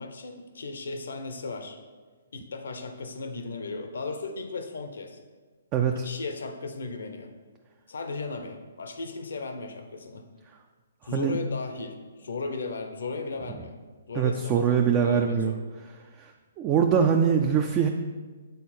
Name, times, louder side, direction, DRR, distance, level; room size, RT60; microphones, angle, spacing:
voice 1, 0.0-1.8 2.3-5.2 5.9-7.3 7.9-10.2 11.0-13.8 14.1-15.6, left 3 dB, 70° left, 6 dB, 0.8 m, -36 dB
voice 2, 5.7-6.1 11.1-11.4 14.1-15.5 16.2-16.3 16.6-17.9, right 7 dB, 25° right, 4 dB, 0.4 m, -23 dB
8.2 x 4.0 x 4.3 m, 1.4 s
hypercardioid pair, 135°, 0 cm